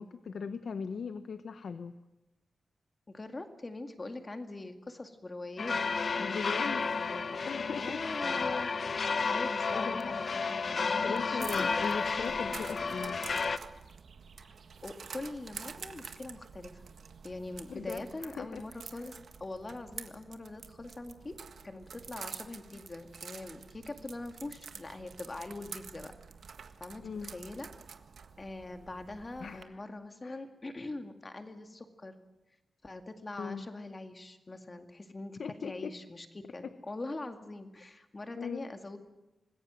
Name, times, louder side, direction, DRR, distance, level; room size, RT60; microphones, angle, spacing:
voice 1, 0.0-1.9 6.2-6.8 7.5-8.0 9.7-10.1 11.0-13.2 17.7-18.6 18.9-19.1 27.0-27.3 29.4-29.7 30.2-30.4 33.4-33.7 35.4-36.0 36.6-36.7 38.4-38.7, left 6 dB, 75° left, 10 dB, 1.0 m, -39 dB
voice 2, 3.1-5.8 6.0-6.7 7.0-8.7 9.2-11.7 12.9-13.0 14.4-14.6 14.8-16.8 17.2-21.4 21.6-26.1 26.8-27.7 28.4-32.2 32.8-39.0, left 2 dB, 25° left, 6 dB, 2.1 m, -43 dB
sound 1, 5.6-13.6, left 4 dB, 50° left, 1.0 m, -32 dB
sound 2, 11.4-29.6, right 6 dB, 80° right, 1.6 m, -48 dB
26.0 x 20.5 x 7.7 m, 0.99 s
wide cardioid pair, 170°, 0 cm